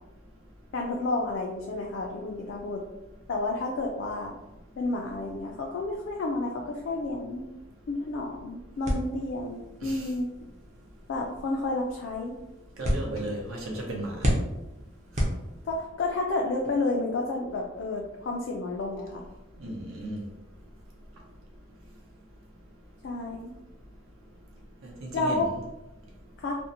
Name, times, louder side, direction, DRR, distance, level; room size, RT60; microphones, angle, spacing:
voice 1, 0.7-2.8 3.3-4.3 4.8-7.4 7.9-10.3 11.1-12.3 15.6-19.3 23.0-23.5 25.1-25.5 26.4-26.6, left 2 dB, 65° left, -1 dB, 0.3 m, -30 dB
sound 1, 8.8-16.0, equal, 35° right, 0.5 m, -33 dB
voice 2, 12.8-14.3 19.6-20.2 24.8-25.5, right 1 dB, 85° right, -1 dB, 0.7 m, -35 dB
2.6 x 2.0 x 2.6 m, 0.98 s
head